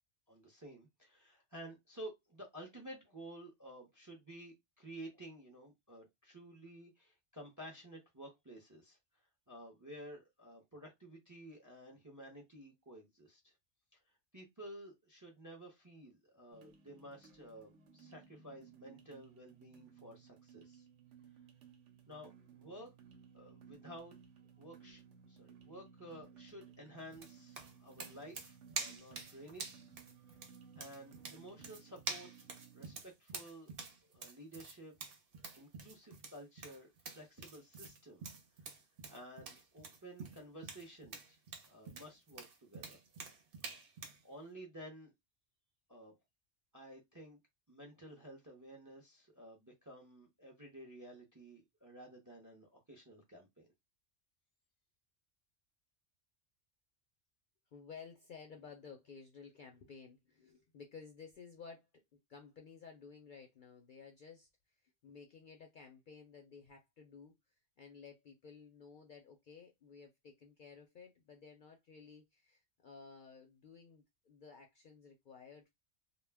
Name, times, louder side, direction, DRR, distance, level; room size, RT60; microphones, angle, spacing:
voice 1, 0.3-9.0 9.5-13.5 13.9-14.0 14.3-20.8 22.1-22.9 23.3-24.1 24.6-25.0 25.3-29.8 30.7-32.5 32.7-33.7 34.0-34.9 35.6-38.2 38.7-38.8 39.1-43.0 44.2-45.1 45.9-46.1 46.7-47.4 47.7-53.7, right 1 dB, 25° right, 0.4 m, -53 dB
sound 1, 16.5-33.0, right 7 dB, 90° right, 1.0 m, -59 dB
sound 2, 27.1-44.2, right 4 dB, 55° right, 0.8 m, -47 dB
voice 2, 57.7-61.9 62.3-64.5 64.8-75.7, left 5 dB, 60° left, 0.5 m, -55 dB
2.2 x 2.1 x 3.3 m
omnidirectional pair, 1.2 m